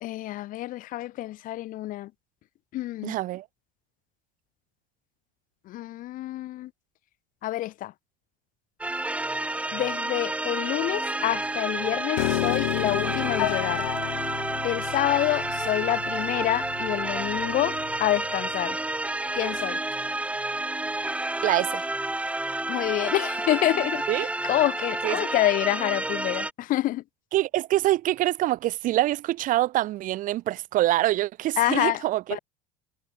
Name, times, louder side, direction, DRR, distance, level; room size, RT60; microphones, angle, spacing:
voice 1, 0.0-2.1 2.7-3.2 5.7-6.7 7.4-7.9 9.7-13.9 14.6-18.8 19.4-19.8 22.7-27.0 31.6-32.0 32.3-32.4, left 15 dB, 50° left, 0.8 m, -27 dB
voice 2, 3.0-3.4 21.4-21.9 24.1-24.3 25.0-25.3 27.3-32.2, right 15 dB, 50° right, 0.7 m, -25 dB
sound 1, 8.8-26.5, right 2 dB, 5° right, 0.8 m, -30 dB
Piano, 12.2-18.4, left 22 dB, 75° left, 3.9 m, -32 dB
hypercardioid pair, 75°, 18 cm